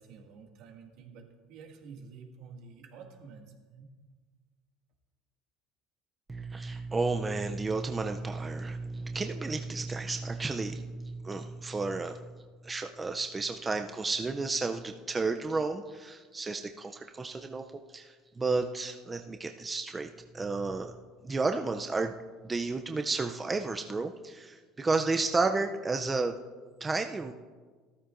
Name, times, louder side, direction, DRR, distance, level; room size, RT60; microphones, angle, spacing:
voice 1, 0.0-3.9, right 5 dB, 65° right, 2 dB, 1.9 m, -50 dB
voice 2, 6.3-12.2 12.6-17.6 17.9-20.1 20.3-20.9 21.2-22.1 22.4-26.3 26.8-27.3, right 3 dB, 15° right, 6 dB, 0.4 m, -32 dB
14.5 x 14.0 x 2.5 m, 1.5 s
cardioid pair, 140°, 0 cm